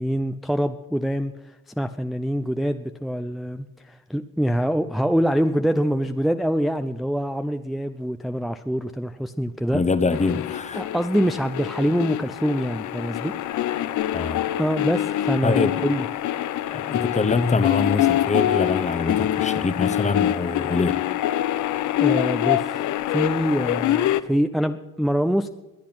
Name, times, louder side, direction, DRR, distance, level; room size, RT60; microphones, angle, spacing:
voice 1, 0.0-9.8 10.8-13.3 14.6-16.0 22.0-22.8 23.1-25.5, equal, ahead, 0.5 m, -25 dB
voice 2, 9.7-10.8 14.1-14.4 15.4-15.7 16.7-21.0, left 4 dB, 25° left, 0.9 m, -24 dB
sound 1, 10.1-24.2, left 12 dB, 75° left, 0.7 m, -25 dB
21.5 x 8.5 x 6.0 m
cardioid pair, 90°, 30 cm